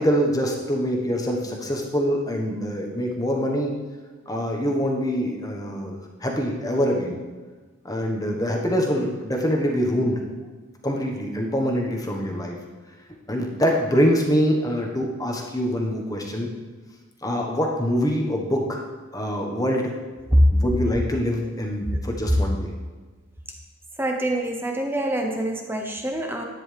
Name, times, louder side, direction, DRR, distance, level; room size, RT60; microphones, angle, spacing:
voice 1, 0.0-3.7 4.3-7.2 7.8-10.2 10.8-12.6 13.3-16.5 17.2-18.8 19.1-19.9 20.5-22.7, equal, 15° left, 0 dB, 1.2 m, -24 dB
voice 2, 24.0-26.4, equal, 10° right, 2 dB, 0.7 m, -23 dB
11.0 x 9.7 x 3.4 m, 1.3 s
head